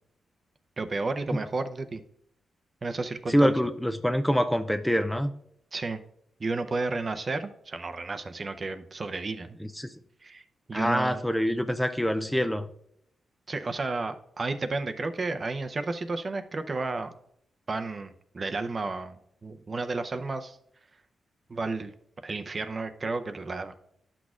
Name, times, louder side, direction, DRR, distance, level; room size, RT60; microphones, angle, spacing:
voice 1, 0.8-2.0 2.8-3.5 5.7-6.0 6.4-9.6 10.2-11.2 13.5-17.1 17.7-20.6 21.5-21.9 22.2-23.8, right 3 dB, 35° right, 0.6 m, -32 dB
voice 2, 3.3-5.3 9.8-9.9 10.7-12.7, equal, 5° left, 0.4 m, -25 dB
11.5 x 6.2 x 2.4 m
cardioid pair, 95°, 0 cm